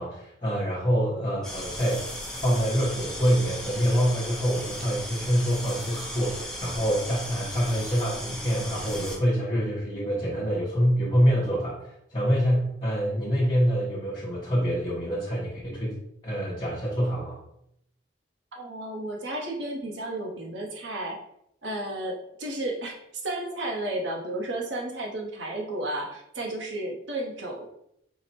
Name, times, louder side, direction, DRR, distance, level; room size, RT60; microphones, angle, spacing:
voice 1, 0.0-16.0 16.2-17.4, equal, 25° left, -7 dB, 0.9 m, -26 dB
sound 1, 1.4-9.2, left 1 dB, 5° left, 0.5 m, -37 dB
voice 2, 18.5-21.2 21.6-23.0 23.2-27.7, right 1 dB, 75° right, 1 dB, 0.8 m, -33 dB
4.7 x 2.1 x 4.2 m, 0.77 s
head